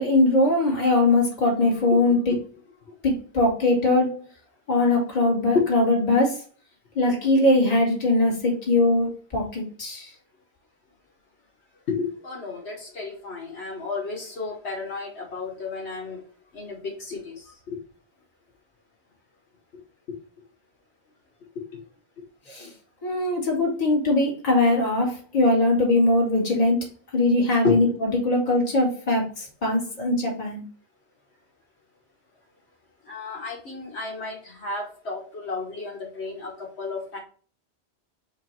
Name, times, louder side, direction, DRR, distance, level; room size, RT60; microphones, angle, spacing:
voice 1, 0.0-2.3 3.0-4.2 4.7-6.4 7.0-10.1 22.5-22.7 23.0-30.6, left 2 dB, 35° left, -3 dB, 1.7 m, -21 dB
voice 2, 11.9-16.2 16.5-17.3 17.7-17.8 21.7-21.8 27.6-27.8 33.1-37.2, left 4 dB, 70° left, -3 dB, 1.5 m, -31 dB
4.6 x 2.6 x 4.3 m, 0.42 s
omnidirectional pair, 1.1 m